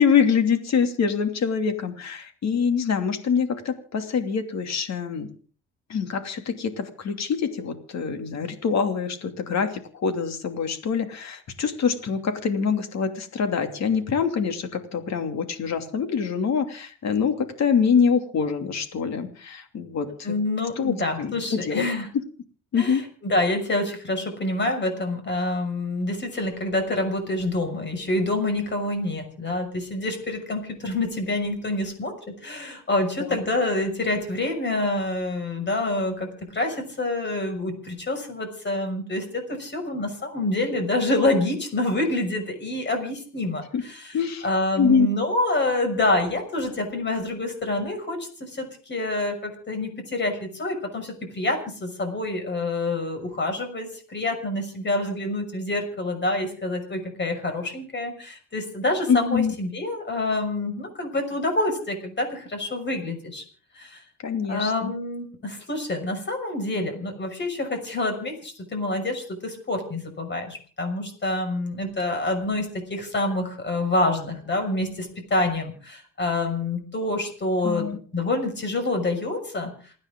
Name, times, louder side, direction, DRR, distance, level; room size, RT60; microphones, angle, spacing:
voice 1, 0.0-5.3 5.9-20.4 20.8-21.8 22.7-23.0 33.2-33.4 43.7-43.8 44.1-44.5 44.8-45.1 59.1-59.5 64.2-64.9 77.6-78.0, left 6 dB, 60° left, 6 dB, 2.8 m, -25 dB
voice 2, 20.2-22.1 22.8-32.1 32.4-44.2 44.4-63.4 63.7-64.0 64.5-79.7, left 2 dB, 35° left, 5 dB, 6.2 m, -27 dB
28.5 x 9.8 x 3.8 m, 0.41 s
cardioid pair, 90°, 30 cm